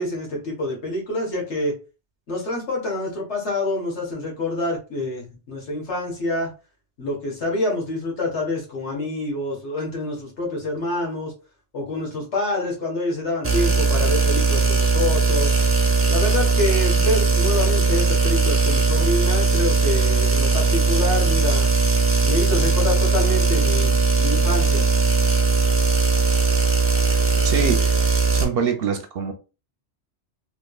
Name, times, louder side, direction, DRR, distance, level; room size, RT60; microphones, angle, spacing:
voice 1, 0.0-1.7 2.3-6.5 7.0-11.3 11.7-15.6 16.1-21.7 22.2-24.9, left 2 dB, 75° left, 1.7 m, -27 dB
sound 1, 13.4-28.4, right 4 dB, 20° right, 0.4 m, -19 dB
voice 2, 27.4-29.3, right 6 dB, 65° right, 0.7 m, -25 dB
3.3 x 3.2 x 2.3 m
omnidirectional pair, 1.2 m